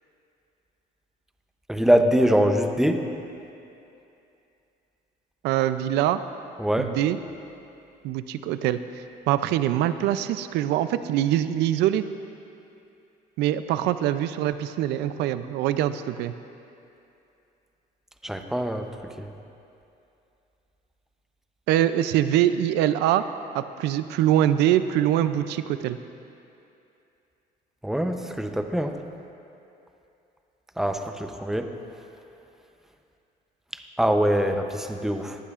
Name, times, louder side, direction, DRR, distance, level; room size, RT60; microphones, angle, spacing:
voice 1, 1.7-3.0 6.6-6.9 18.2-18.8 19.2-19.3 27.8-28.9 30.8-31.7 34.0-35.4, equal, ahead, 5 dB, 0.7 m, -23 dB
voice 2, 5.4-6.2 6.8-7.2 8.0-8.8 9.3-12.0 13.4-16.3 21.7-23.3 23.5-26.0, right 12 dB, 85° right, 12 dB, 0.4 m, -23 dB
18.0 x 12.0 x 2.5 m, 2.7 s
cardioid pair, 110°, 17 cm